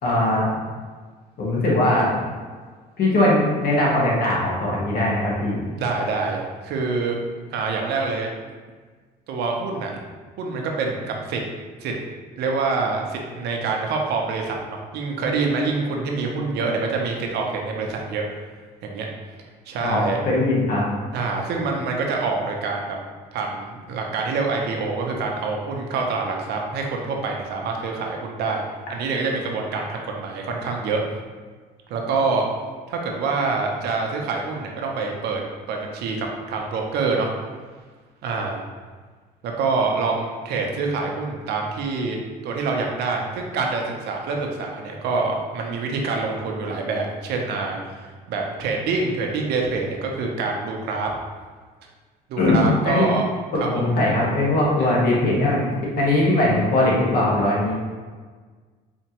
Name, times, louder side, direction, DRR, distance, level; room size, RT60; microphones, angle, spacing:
voice 1, 0.0-0.5 1.4-2.1 3.0-5.6 19.8-20.9 52.4-53.1 53.5-55.6 56.0-57.7, left 1 dB, 60° left, -4 dB, 1.3 m, -20 dB
voice 2, 5.8-7.2 7.5-8.3 9.3-9.9 10.4-11.4 11.8-11.9 12.4-18.2 18.8-19.1 19.7-20.2 21.1-23.0 23.3-31.0 31.9-32.4 32.9-35.4 35.7-37.3 38.2-38.6 39.4-51.1 52.3-53.2 53.7-53.8 54.8-54.9, right 4 dB, 75° right, 1 dB, 0.7 m, -26 dB
4.3 x 2.8 x 2.9 m, 1.5 s
cardioid pair, 110°, 17 cm